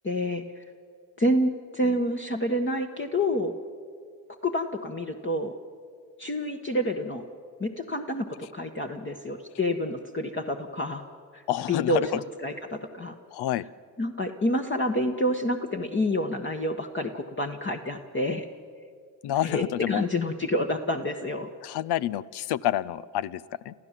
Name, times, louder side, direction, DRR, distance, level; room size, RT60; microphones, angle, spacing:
voice 1, 0.0-0.6 1.2-3.5 4.4-5.5 6.2-7.2 7.6-11.0 11.3-11.4 11.7-13.1 14.0-18.4 19.4-21.5, left 1 dB, 30° left, 2 dB, 1.5 m, -28 dB
voice 2, 11.5-12.1 13.3-13.7 19.2-20.1 21.6-23.7, left 12 dB, 75° left, 18 dB, 0.7 m, -28 dB
28.0 x 14.5 x 7.5 m, 2.1 s
supercardioid pair, 55°, 40 cm